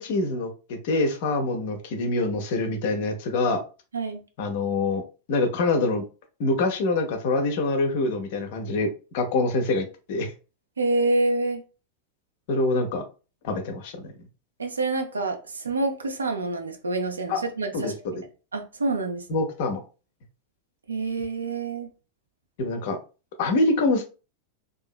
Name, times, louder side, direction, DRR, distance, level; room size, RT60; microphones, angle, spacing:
voice 1, 0.0-3.6 4.4-5.0 5.3-6.0 6.4-10.3 12.5-13.0 13.4-14.1 17.3-17.4 17.7-18.1 19.3-19.8 22.6-23.0 23.4-24.0, left 2 dB, 50° left, 0.6 m, -25 dB
voice 2, 10.8-11.6 14.6-17.9 18.5-19.4 20.9-21.9, right 2 dB, 75° right, 0.5 m, -27 dB
2.7 x 2.4 x 2.4 m
figure-of-eight pair, 90°, 0 cm